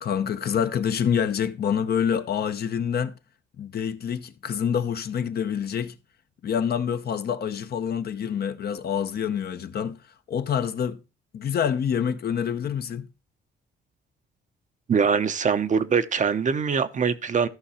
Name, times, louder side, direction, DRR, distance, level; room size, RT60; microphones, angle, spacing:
voice 1, 0.0-3.1 3.6-5.9 6.4-10.0 10.3-11.0 11.3-13.1, left 8 dB, 55° left, 0.8 m, -26 dB
voice 2, 14.9-17.5, right 6 dB, 40° right, 0.7 m, -23 dB
13.0 x 5.7 x 4.2 m
cardioid pair, 90°, 20 cm